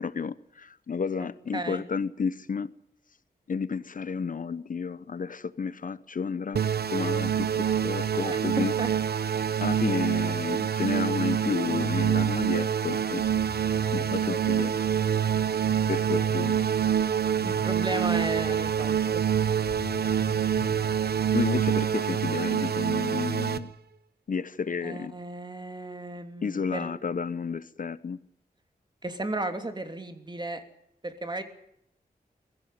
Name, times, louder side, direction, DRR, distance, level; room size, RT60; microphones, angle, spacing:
voice 1, 0.0-2.7 3.5-6.6 6.9-8.7 9.6-13.2 13.9-14.7 15.4-16.6 21.3-23.7 24.3-25.1 26.4-28.2, left 5 dB, 55° left, 0.8 m, -31 dB
voice 2, 1.5-1.8 8.1-8.9 17.4-19.2 24.8-26.9 29.0-30.6 31.0-31.4, right 2 dB, 30° right, 3.0 m, -34 dB
sound 1, 6.6-23.6, right 8 dB, 85° right, 1.0 m, -26 dB
sound 2, 12.8-21.3, left 4 dB, 75° left, 4.7 m, -45 dB
23.0 x 15.5 x 9.3 m
wide cardioid pair, 90°, 16 cm